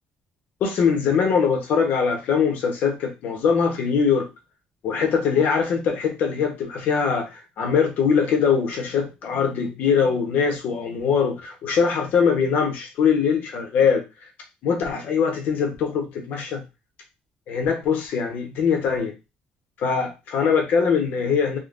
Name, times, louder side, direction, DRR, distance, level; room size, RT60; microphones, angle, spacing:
voice 1, 0.6-4.3 4.8-14.0 14.6-16.6 17.5-19.1 19.8-21.6, left 6 dB, 70° left, 3 dB, 1.0 m, -22 dB
3.7 x 2.3 x 2.5 m, 0.26 s
cardioid pair, 145°, 3 cm